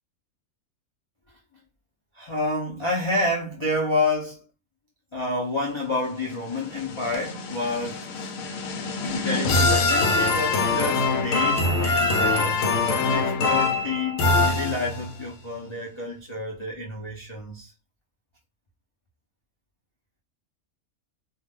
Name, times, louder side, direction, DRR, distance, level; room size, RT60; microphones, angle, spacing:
voice 1, 2.1-4.4 5.1-8.3 9.0-12.7 13.1-17.7, left 2 dB, 50° left, 0.3 m, -29 dB
sound 1, 6.3-15.2, left 3 dB, 75° left, 0.9 m, -24 dB
2.4 x 2.2 x 3.4 m
omnidirectional pair, 1.5 m